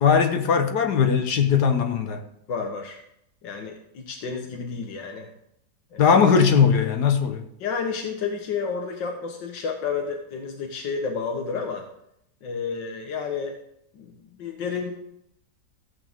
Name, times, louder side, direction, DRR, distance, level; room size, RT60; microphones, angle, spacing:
voice 1, 0.0-2.2 6.0-7.4, left 6 dB, 65° left, 1.6 m, -19 dB
voice 2, 2.5-3.0 3.4-5.3 5.9-6.0 7.6-11.8 12.4-13.6 13.9-14.9, left 5 dB, 85° left, 1.9 m, -31 dB
15.5 x 8.4 x 3.6 m
omnidirectional pair, 1.9 m